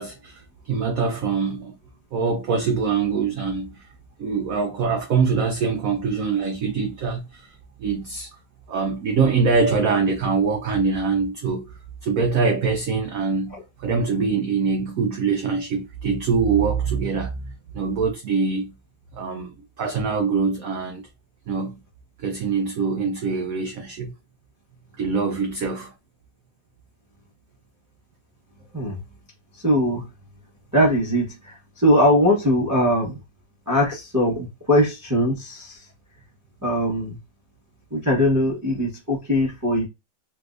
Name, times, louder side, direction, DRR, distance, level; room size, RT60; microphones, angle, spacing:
voice 1, 0.0-1.8 2.1-3.9 4.2-7.5 7.8-8.3 8.7-18.8 19.1-21.1 21.5-21.8 22.2-24.1 25.0-25.9, right 5 dB, 75° right, 0.7 m, -24 dB
voice 2, 29.6-30.0 30.7-33.2 33.7-35.8 36.6-37.2 37.9-39.9, equal, 20° right, 0.5 m, -21 dB
3.3 x 3.1 x 2.4 m
omnidirectional pair, 2.0 m